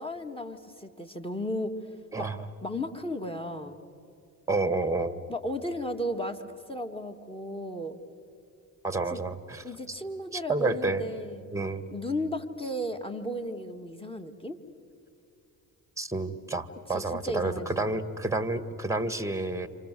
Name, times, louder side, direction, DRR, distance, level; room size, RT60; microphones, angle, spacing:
voice 1, 0.0-1.7 2.2-2.3 2.6-3.8 5.3-6.4 6.7-8.0 9.1-9.2 9.6-11.5 11.9-14.6 16.9-17.9, equal, 10° left, 5 dB, 2.4 m, -34 dB
voice 2, 4.5-5.2 8.8-9.6 10.3-11.0 11.5-11.9 16.0-19.7, right 2 dB, 5° right, 12 dB, 1.8 m, -29 dB
28.5 x 26.5 x 7.8 m, 2.5 s
supercardioid pair, 60°, 48 cm